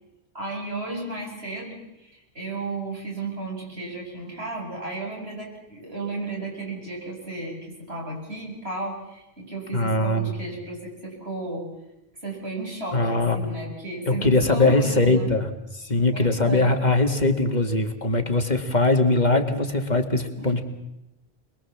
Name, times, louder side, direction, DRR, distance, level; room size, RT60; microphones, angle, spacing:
voice 1, 0.3-11.7 12.2-15.3 16.1-16.8 20.4-20.5, right 2 dB, 80° right, -2 dB, 7.9 m, -34 dB
voice 2, 9.7-10.3 12.9-13.5 14.1-20.6, left 2 dB, 45° left, 5 dB, 2.2 m, -21 dB
27.0 x 21.5 x 7.4 m, 0.92 s
omnidirectional pair, 1.1 m